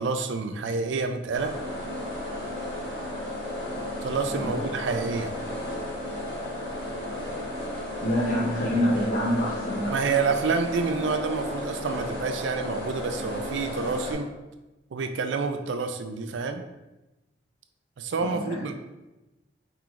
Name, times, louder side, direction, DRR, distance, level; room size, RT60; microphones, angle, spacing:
voice 1, 0.0-1.5 4.0-5.3 9.9-14.3 14.9-16.6 18.0-18.7, right 4 dB, 80° right, 7 dB, 0.4 m, -28 dB
sound 1, 1.3-14.1, left 1 dB, 65° left, 1.2 m, -34 dB
voice 2, 8.0-10.1 18.2-18.7, equal, 45° left, -5 dB, 0.6 m, -27 dB
4.4 x 3.8 x 2.4 m, 1.0 s
head